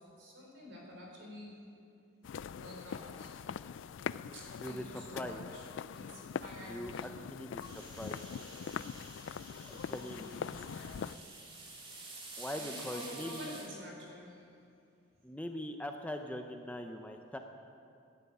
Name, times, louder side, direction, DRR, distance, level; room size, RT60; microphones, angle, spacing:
voice 1, 0.0-1.6 2.6-3.4 4.3-7.2 9.9-11.2 12.5-14.5, left 1 dB, 75° right, -2 dB, 4.6 m, -50 dB
sound 1, 2.2-11.2, left 7 dB, 70° left, 0.3 m, -43 dB
voice 2, 4.6-5.4 6.6-6.9 7.3-7.6 8.0-8.2 9.7-10.3 12.4-13.6 15.2-17.4, left 1 dB, 5° left, 5 dB, 0.6 m, -41 dB
sound 2, 7.6-13.7, right 2 dB, 25° right, 2.3 m, -49 dB
12.5 x 11.0 x 9.4 m, 2.5 s
head